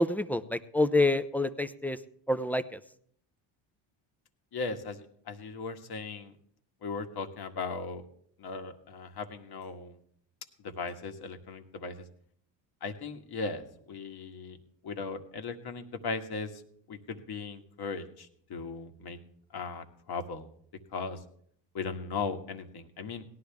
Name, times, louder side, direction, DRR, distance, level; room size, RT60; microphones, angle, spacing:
voice 1, 0.0-2.0 2.3-2.8, left 1 dB, 5° left, 11 dB, 0.6 m, -27 dB
voice 2, 4.5-6.4 6.8-8.0 8.4-10.0 10.6-12.0 12.8-14.6 14.8-16.6 16.9-19.2 19.5-20.5 20.9-21.2 21.7-23.2, left 4 dB, 50° left, 6 dB, 1.7 m, -37 dB
17.5 x 12.0 x 3.5 m, 0.64 s
supercardioid pair, 80°, 50 cm